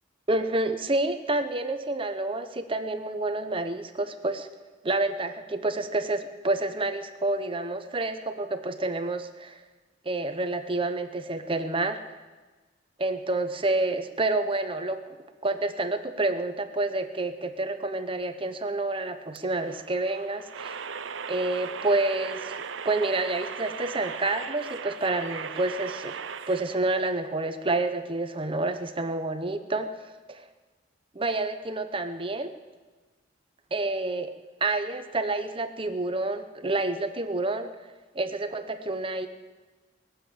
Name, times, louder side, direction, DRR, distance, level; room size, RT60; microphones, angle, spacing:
voice 1, 0.3-4.5 4.8-9.6 10.0-12.0 13.0-15.1 15.4-20.8 21.3-22.6 22.8-26.2 26.5-29.9 30.3-30.4 31.1-32.5 33.7-34.3 34.6-37.7 38.1-39.3, right 2 dB, 30° right, 8 dB, 1.0 m, -28 dB
sound 1, 19.4-26.8, right 6 dB, 80° right, 0.6 m, -37 dB
21.0 x 7.5 x 8.6 m, 1.3 s
head